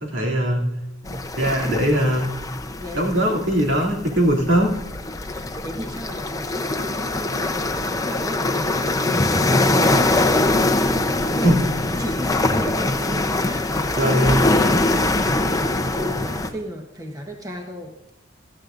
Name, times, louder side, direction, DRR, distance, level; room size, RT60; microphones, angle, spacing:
voice 1, 0.0-0.6 1.1-2.2 2.9-4.7 11.4-11.7 14.0-14.4, equal, 70° right, -1 dB, 2.8 m, -20 dB
sound 1, 1.1-16.5, left 2 dB, 20° left, 0.7 m, -23 dB
voice 2, 2.8-3.4 5.2-18.0, equal, 20° right, 2 dB, 1.2 m, -34 dB
17.0 x 13.0 x 2.6 m, 0.95 s
head